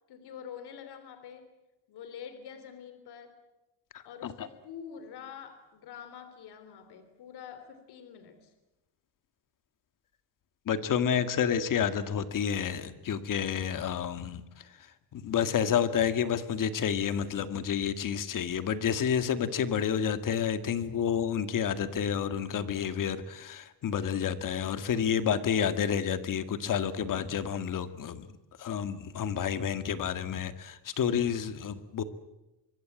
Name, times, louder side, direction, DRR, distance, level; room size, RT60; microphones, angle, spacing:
voice 1, 0.1-1.5 1.9-3.4 4.1-8.5, left 8 dB, 65° left, 9 dB, 3.4 m, -46 dB
voice 2, 3.9-4.5 10.7-14.6 15.1-28.3 28.6-32.0, left 8 dB, 45° left, 11 dB, 1.8 m, -30 dB
25.5 x 22.5 x 8.9 m, 0.99 s
cardioid pair, 155°, 43 cm